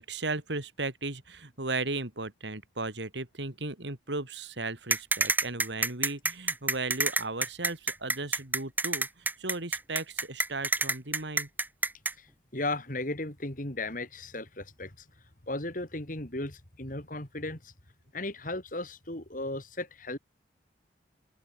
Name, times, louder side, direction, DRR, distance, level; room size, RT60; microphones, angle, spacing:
voice 1, 0.0-11.5, right 3 dB, 70° right, 3.0 m, -36 dB
sound 1, 4.9-12.1, right 3 dB, 10° right, 0.9 m, -27 dB
voice 2, 12.2-15.1 15.5-17.7 18.1-20.2, left 2 dB, 45° left, 3.5 m, -36 dB
open air
head